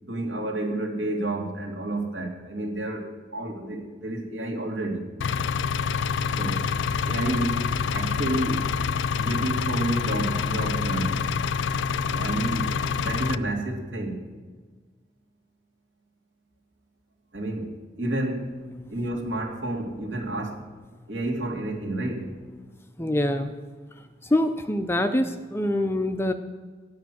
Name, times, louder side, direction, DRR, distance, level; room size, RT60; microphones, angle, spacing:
voice 1, 0.0-5.0 6.4-6.6 7.1-7.7 7.9-8.8 9.1-11.2 12.1-12.7 13.0-14.2 17.3-18.5 18.9-20.6 21.1-22.3, right 1 dB, 70° right, -1 dB, 2.8 m, -30 dB
Engine, 5.2-13.4, left 6 dB, 70° left, 0.4 m, -26 dB
voice 2, 23.0-23.5 23.9-26.3, left 1 dB, 10° left, 8 dB, 0.5 m, -25 dB
12.5 x 9.6 x 6.3 m, 1.5 s
head